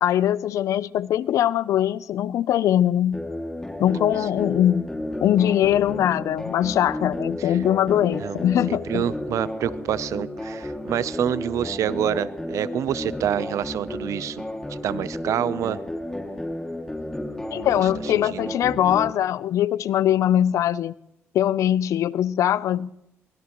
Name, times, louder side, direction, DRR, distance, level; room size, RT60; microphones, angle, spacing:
voice 1, 0.0-3.2 3.8-4.8 5.2-9.0 17.5-20.9 21.3-22.9, left 11 dB, 80° left, 0.5 m, -21 dB
sound 1, 3.1-19.1, left 1 dB, 10° left, 2.3 m, -32 dB
voice 2, 8.7-14.4 14.7-15.8 17.5-17.7 18.0-18.5, right 10 dB, 80° right, 0.6 m, -27 dB
23.5 x 20.0 x 3.0 m
cardioid pair, 80°, 5 cm